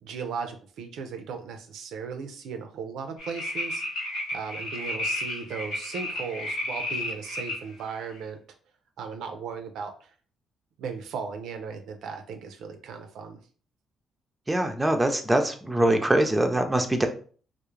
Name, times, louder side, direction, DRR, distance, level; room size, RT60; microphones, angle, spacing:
voice 1, 0.0-3.8 4.3-8.4 9.0-10.1 10.8-13.4, right 5 dB, 80° right, 6 dB, 0.4 m, -37 dB
sound 1, 3.2-7.6 8.2-8.3, left 1 dB, 90° left, 1.0 m, -32 dB
voice 2, 14.5-17.1, right 1 dB, 15° right, 5 dB, 0.4 m, -23 dB
2.3 x 2.0 x 3.0 m, 0.42 s
cardioid pair, 90°, 0 cm